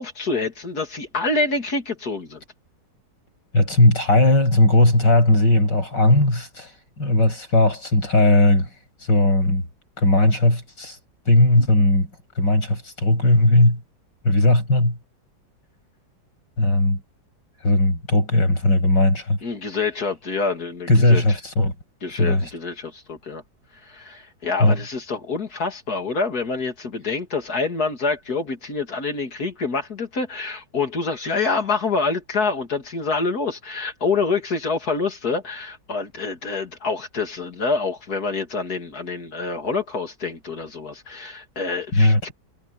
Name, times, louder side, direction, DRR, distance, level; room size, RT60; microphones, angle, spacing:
voice 1, 0.0-2.4 19.4-21.2 22.0-23.4 23.8-42.3, left 4 dB, 60° left, 3.2 m, -26 dB
voice 2, 3.5-6.7 7.0-8.7 9.1-9.6 10.0-11.0 11.3-12.1 12.4-13.8 14.2-15.0 16.6-17.0 17.6-19.4 20.9-21.7 22.2-22.5 24.6-24.8 41.9-42.3, left 2 dB, 80° left, 8.1 m, -17 dB
omnidirectional pair, 1.9 m